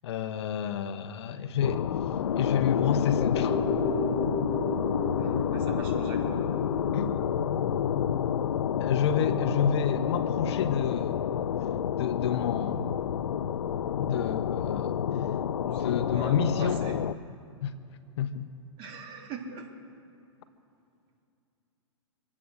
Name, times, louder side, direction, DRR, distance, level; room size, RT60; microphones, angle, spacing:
voice 1, 0.0-1.9 2.4-3.6 6.9-7.2 8.8-11.4 12.0-12.9 14.0-15.0 15.7-16.8 17.6-17.7 18.2-18.5, left 8 dB, 65° left, 11 dB, 0.9 m, -29 dB
sound 1, 1.6-17.1, left 9 dB, 80° left, 0.5 m, -29 dB
sound 2, 3.2-11.6 11.9-12.0, left 2 dB, 35° left, 3.2 m, -35 dB
voice 2, 5.2-6.4 15.7-17.0 18.8-19.7, right 5 dB, 35° right, 0 dB, 3.1 m, -41 dB
25.5 x 8.6 x 6.4 m, 2.6 s
hypercardioid pair, 120°, 15 cm